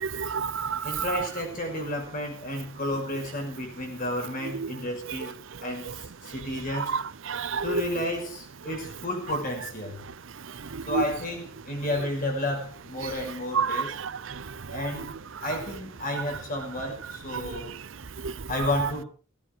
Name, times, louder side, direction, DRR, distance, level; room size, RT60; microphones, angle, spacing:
voice 1, 0.0-1.0 7.3-7.8 10.9-11.0 13.5-13.8 18.2-18.3, right 5 dB, 65° right, 0.7 m, -28 dB
voice 2, 0.8-6.9 7.6-10.1 10.9-14.0 14.7-15.2 15.4-17.7 18.5-19.1, left 1 dB, 40° left, 5.9 m, -32 dB
16.5 x 15.5 x 4.6 m
head